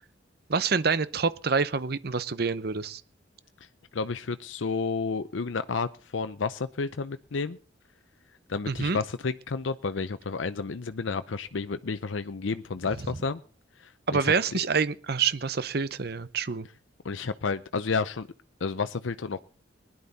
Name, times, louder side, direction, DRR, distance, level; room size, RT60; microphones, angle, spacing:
voice 1, 0.5-3.0 8.7-9.0 14.1-16.7, right 5 dB, 55° right, 0.8 m, -27 dB
voice 2, 3.9-7.6 8.5-13.4 13.8-14.3 17.0-18.3 18.6-19.4, left 4 dB, 85° left, 0.6 m, -31 dB
20.0 x 11.0 x 4.1 m
head